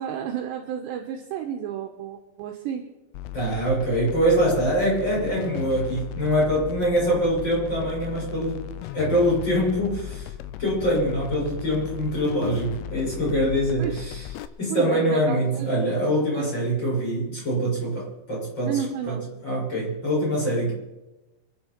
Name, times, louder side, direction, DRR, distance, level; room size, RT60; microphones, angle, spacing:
voice 1, 0.0-2.9 13.8-14.0 14.7-15.7 16.3-16.5 18.6-19.2, right 8 dB, 75° right, 4 dB, 2.9 m, -31 dB
sound 1, 3.1-14.5, left 12 dB, 90° left, 3.4 m, -37 dB
voice 2, 3.3-8.6 8.9-10.3 10.6-14.3 14.6-19.1 19.4-20.7, equal, 20° left, -5 dB, 7.0 m, -24 dB
26.5 x 10.0 x 4.6 m, 1.0 s
omnidirectional pair, 5.7 m